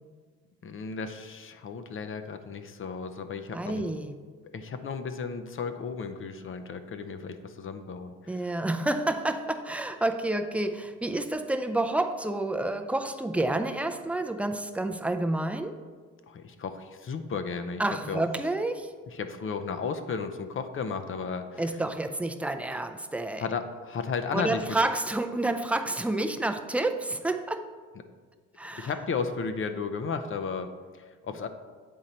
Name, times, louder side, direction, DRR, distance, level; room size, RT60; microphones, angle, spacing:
voice 1, 0.6-3.9 4.5-8.5 16.3-17.8 18.1-18.2 19.1-21.8 23.4-24.8 28.7-31.5, left 5 dB, 45° left, 9 dB, 0.6 m, -34 dB
voice 2, 3.5-4.3 8.3-15.8 17.8-18.9 21.6-23.5 24.3-27.7 28.6-28.9, right 2 dB, 5° right, 7 dB, 0.4 m, -29 dB
8.5 x 3.9 x 4.3 m, 1.5 s
cardioid pair, 90°, 30 cm